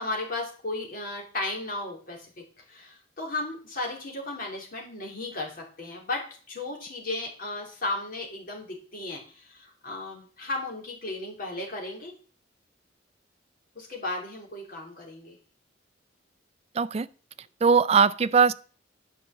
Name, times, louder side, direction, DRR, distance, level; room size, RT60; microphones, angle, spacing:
voice 1, 0.0-2.3 2.7-6.2 6.5-12.1 13.7-15.4, left 2 dB, 50° left, 3.2 m, -35 dB
voice 2, 16.7-17.1 17.6-18.5, right 6 dB, 35° right, 0.4 m, -20 dB
10.0 x 5.3 x 7.1 m
head